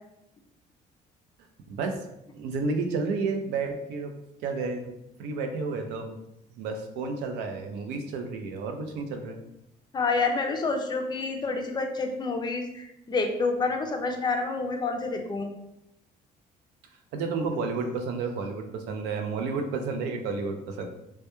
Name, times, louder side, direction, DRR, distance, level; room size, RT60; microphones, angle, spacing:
voice 1, 1.7-2.1 2.3-4.1 4.4-4.9 5.2-6.2 6.6-9.4 17.1-20.9, right 4 dB, 90° right, 5 dB, 0.4 m, -31 dB
voice 2, 9.9-15.5, left 3 dB, 25° left, 4 dB, 0.4 m, -28 dB
2.2 x 2.1 x 2.9 m, 0.83 s
cardioid pair, 110°, 17 cm